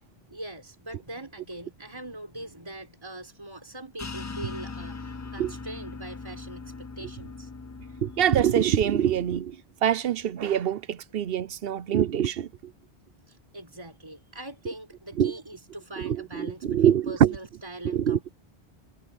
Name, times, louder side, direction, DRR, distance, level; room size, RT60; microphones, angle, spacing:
voice 1, 0.3-7.5 13.3-18.3, right 1 dB, 25° right, 4.1 m, -42 dB
sound 1, 4.0-9.4, left 4 dB, 25° left, 0.3 m, -40 dB
voice 2, 8.0-9.6 9.8-12.5 15.2-15.3 16.0-17.4 17.8-18.3, right 9 dB, 70° right, 0.9 m, -24 dB
omnidirectional pair, 1.0 m